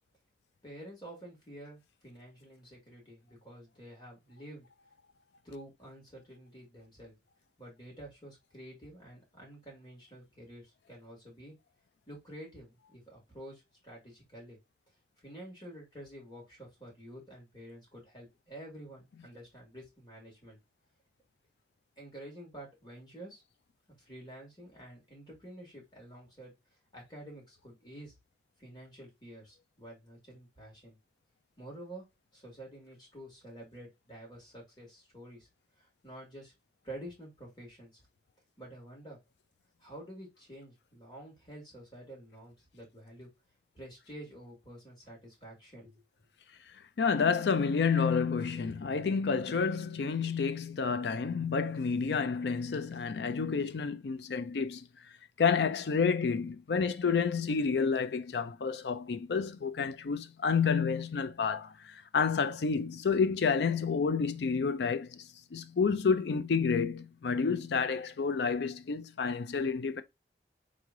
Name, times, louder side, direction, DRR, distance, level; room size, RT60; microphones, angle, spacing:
voice 1, 0.6-4.7 5.4-7.1 7.6-11.5 12.1-14.6 15.2-20.6 22.0-23.4 24.0-26.5 26.9-28.1 28.6-31.0 31.6-32.0 32.3-35.5 35.8-36.5 36.8-38.0 38.6-39.2 39.8-43.3 43.7-45.9, right 1 dB, 25° left, 2.3 m, -49 dB
voice 2, 47.0-54.9 55.4-70.0, left 5 dB, 75° left, 0.4 m, -29 dB
3.6 x 3.2 x 3.6 m
head